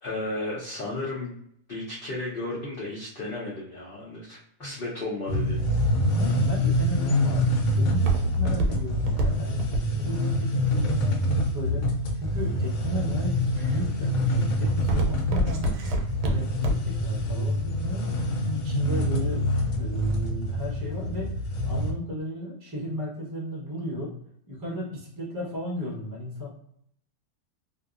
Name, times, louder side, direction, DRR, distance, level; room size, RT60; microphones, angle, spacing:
voice 1, 0.0-1.4 1.7-5.6, left 2 dB, 60° left, -6 dB, 0.6 m, -34 dB
sound 1, 5.3-21.9, equal, 85° left, 1.2 m, -26 dB
voice 2, 6.1-15.8 16.2-19.4 19.8-21.4 21.6-24.1 24.5-26.5, left 1 dB, 25° right, -4 dB, 0.4 m, -34 dB
Walk footsteps, 6.8-11.9 12.5-13.0 13.5-13.8 14.2-17.1 17.4-17.5, right 1 dB, 80° right, 1.1 m, -28 dB
2.6 x 2.5 x 2.4 m, 0.68 s
omnidirectional pair, 1.7 m